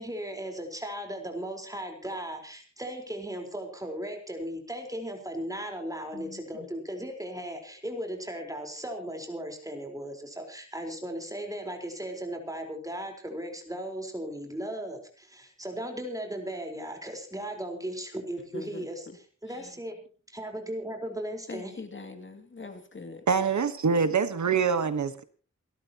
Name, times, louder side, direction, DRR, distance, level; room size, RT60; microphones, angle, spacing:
voice 1, 0.0-19.0 19.4-19.9 20.3-21.7, right 1 dB, 10° right, 4.4 m, -37 dB
voice 2, 6.1-6.7 18.4-19.2 19.5-19.7 21.5-23.3, left 3 dB, 40° left, 2.6 m, -43 dB
voice 3, 23.3-25.2, right 5 dB, 70° right, 1.3 m, -25 dB
28.5 x 13.0 x 3.0 m
wide cardioid pair, 140°, 30 cm